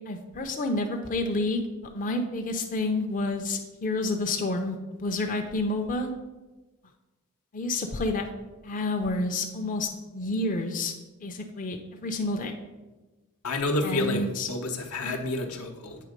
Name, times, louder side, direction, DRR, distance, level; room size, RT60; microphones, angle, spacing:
voice 1, 0.1-1.6 1.9-6.1 7.5-8.3 8.6-10.9 11.2-12.5 13.8-14.5 15.0-15.2, left 2 dB, 40° left, 4 dB, 0.5 m, -29 dB
voice 2, 13.4-16.0, left 2 dB, 85° left, 4 dB, 0.9 m, -29 dB
8.4 x 3.3 x 5.1 m, 1.2 s
head